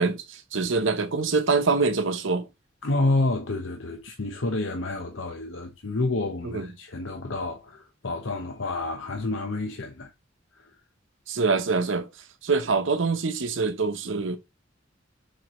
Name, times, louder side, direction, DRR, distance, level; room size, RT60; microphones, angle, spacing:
voice 1, 0.0-2.5 6.4-6.7 11.3-12.1 12.4-14.4, right 4 dB, 70° right, 0.9 m, -25 dB
voice 2, 2.8-10.1 10.5-10.8, left 2 dB, 75° left, 0.9 m, -29 dB
6.4 x 4.7 x 3.1 m
head